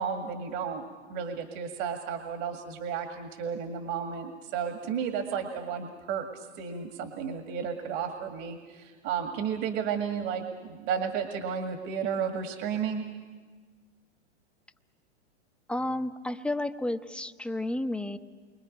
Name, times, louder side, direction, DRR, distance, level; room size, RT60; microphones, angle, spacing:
voice 1, 0.0-13.1, right 7 dB, 45° right, 5 dB, 2.0 m, -33 dB
voice 2, 15.7-18.2, left 1 dB, 5° left, 9 dB, 0.8 m, -31 dB
29.0 x 24.0 x 5.3 m, 1.4 s
hypercardioid pair, 105°, 34 cm